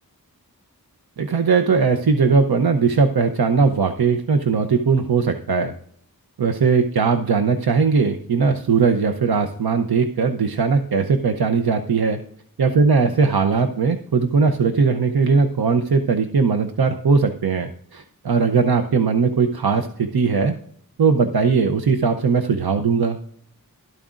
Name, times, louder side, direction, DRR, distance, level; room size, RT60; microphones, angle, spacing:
voice 1, 1.2-5.7 6.4-12.2 12.6-20.6 21.0-23.2, right 5 dB, 85° right, 7 dB, 0.7 m, -19 dB
12.5 x 12.5 x 2.5 m, 0.64 s
wide cardioid pair, 50°, 36 cm